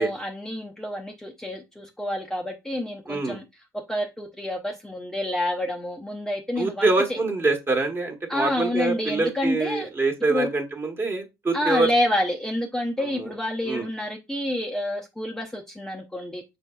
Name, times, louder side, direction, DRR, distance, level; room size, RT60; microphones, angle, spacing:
voice 1, 0.0-3.4 3.7-7.2 8.3-9.9 10.3-10.5 11.5-16.4, left 1 dB, 5° left, 0.6 m, -28 dB
voice 2, 3.1-3.4 6.6-11.9 13.7-13.9, right 3 dB, 25° right, 1.3 m, -25 dB
5.1 x 4.1 x 2.3 m
hypercardioid pair, 75°, 10 cm